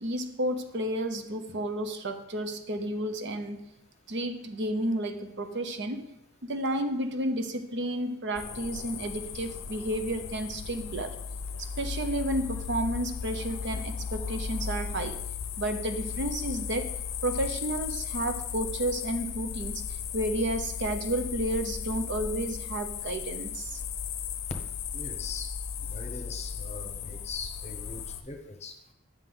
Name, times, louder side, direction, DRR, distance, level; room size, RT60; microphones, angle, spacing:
voice 1, 0.0-3.6 4.1-6.0 6.4-11.1 11.6-15.2 15.6-16.9 17.2-23.8, right 1 dB, 55° right, 7 dB, 0.8 m, -31 dB
sound 1, 8.4-28.2, left 7 dB, 60° left, 0.6 m, -36 dB
voice 2, 24.9-25.6 25.9-28.8, left 4 dB, 30° left, 4 dB, 0.9 m, -41 dB
9.6 x 6.1 x 3.9 m, 0.79 s
head